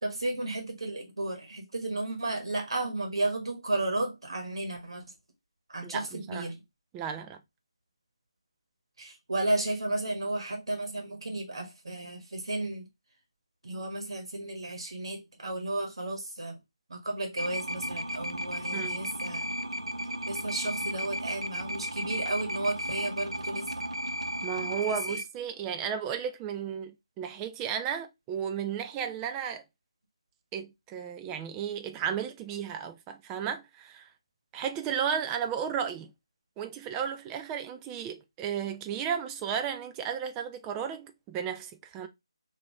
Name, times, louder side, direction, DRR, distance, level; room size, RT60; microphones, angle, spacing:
voice 1, 0.0-5.0 5.7-6.6 9.0-12.8 13.6-16.6 16.9-19.5 20.3-23.7 24.9-25.2, right 2 dB, 60° right, 1.3 m, -33 dB
voice 2, 5.8-6.5 6.9-7.4 18.7-19.0 24.4-29.6 30.5-34.1 34.5-36.1 36.6-42.1, right 8 dB, 15° right, 0.4 m, -34 dB
sound 1, 17.4-25.2, equal, 85° right, 0.7 m, -34 dB
3.9 x 2.7 x 4.5 m
figure-of-eight pair, 150°, 3 cm